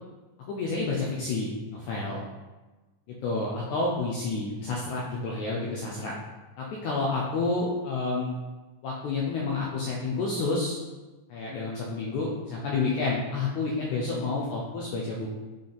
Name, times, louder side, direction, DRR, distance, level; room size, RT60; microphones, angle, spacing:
voice 1, 0.5-2.3 3.1-6.1 6.6-8.3 8.8-10.8 11.3-15.3, left 3 dB, 80° left, -3 dB, 1.8 m, -29 dB
6.7 x 3.7 x 3.9 m, 1.2 s
omnidirectional pair, 4.1 m